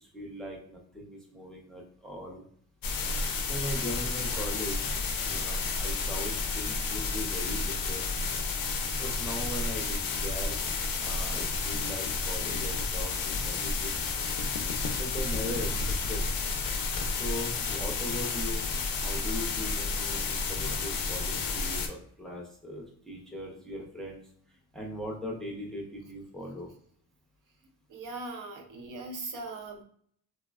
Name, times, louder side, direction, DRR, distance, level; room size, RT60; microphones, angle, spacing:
voice 1, 0.0-2.4 3.5-4.9 5.2-8.1 9.0-10.5 11.0-14.0 15.0-15.7 16.1-16.2 17.2-18.6 18.9-24.2 24.7-26.7, equal, ahead, -2 dB, 0.5 m, -39 dB
sound 1, 2.8-21.9, left 4 dB, 70° left, 0.5 m, -31 dB
voice 2, 27.9-29.8, right 3 dB, 60° right, 3 dB, 0.5 m, -39 dB
3.2 x 2.0 x 2.3 m, 0.62 s
wide cardioid pair, 170°, 37 cm